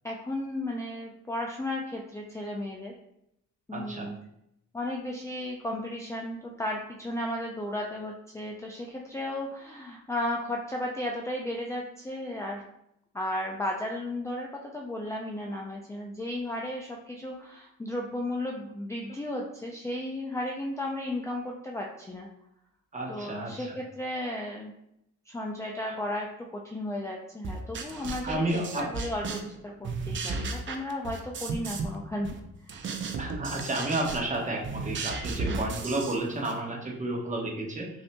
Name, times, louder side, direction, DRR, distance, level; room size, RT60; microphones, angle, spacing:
voice 1, 0.0-3.0 3.7-4.1 4.7-12.7 13.1-22.3 23.1-24.7 25.3-32.3 32.7-32.9 35.4-35.7, left 1 dB, 10° left, -1 dB, 0.4 m, -34 dB
voice 2, 3.7-4.1 22.9-23.7 28.2-28.9 33.2-37.9, right 2 dB, 25° right, -1 dB, 1.0 m, -31 dB
sound 1, 27.4-29.6 29.8-32.0 32.2-36.6, right 4 dB, 40° right, 0.6 m, -35 dB
5.5 x 2.7 x 2.2 m, 0.79 s
cardioid pair, 90°, 30 cm